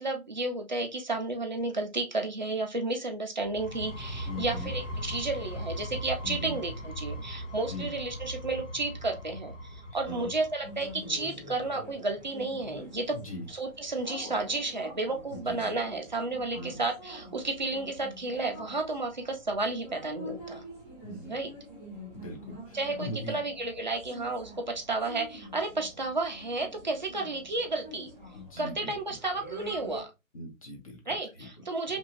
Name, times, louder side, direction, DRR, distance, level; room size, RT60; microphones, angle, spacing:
voice 1, 0.0-13.2 13.5-20.6 21.3-21.5 22.7-28.1 28.6-30.1 31.1-32.0, right 2 dB, 35° right, 0.4 m, -32 dB
sound 1, 3.4-11.1, equal, 60° left, 0.8 m, -39 dB
voice 2, 4.3-4.7 6.2-6.6 7.7-7.9 10.1-10.3 13.1-13.5 15.3-15.7 16.5-16.8 21.0-21.4 22.1-23.4 28.3-29.0 30.3-31.5 31.9-32.0, equal, 25° left, 0.6 m, -40 dB
sound 2, 10.6-30.0, equal, 5° right, 0.8 m, -46 dB
2.9 x 2.6 x 2.7 m
figure-of-eight pair, 145°, 42 cm